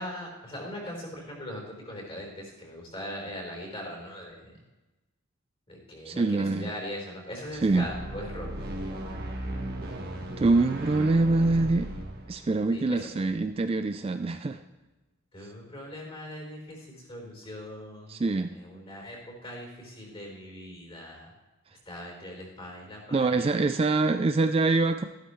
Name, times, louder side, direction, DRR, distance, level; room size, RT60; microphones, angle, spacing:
voice 1, 0.0-4.5 5.7-8.5 12.7-13.1 15.3-18.2 18.6-21.3 21.9-23.7, equal, 25° left, 0 dB, 3.8 m, -40 dB
voice 2, 6.1-6.7 7.6-7.9 10.4-11.9 12.3-14.6 15.4-15.5 18.1-18.6 23.1-25.0, right 3 dB, 25° right, 9 dB, 0.3 m, -25 dB
sound 1, 7.4-13.7, right 1 dB, 45° right, 1.6 m, -37 dB
13.5 x 12.5 x 3.1 m, 1.1 s
head